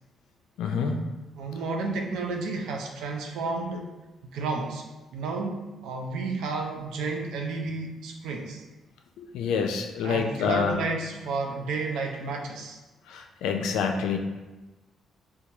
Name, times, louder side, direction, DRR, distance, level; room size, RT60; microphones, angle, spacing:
voice 1, 0.6-1.0 9.2-10.7 13.1-14.2, left 6 dB, 90° left, 4 dB, 0.4 m, -27 dB
voice 2, 1.3-3.9 4.2-4.8 5.1-8.6 10.0-12.8, right 3 dB, 85° right, 2 dB, 0.5 m, -31 dB
4.5 x 2.2 x 2.8 m, 1.1 s
cardioid pair, 90°, 0 cm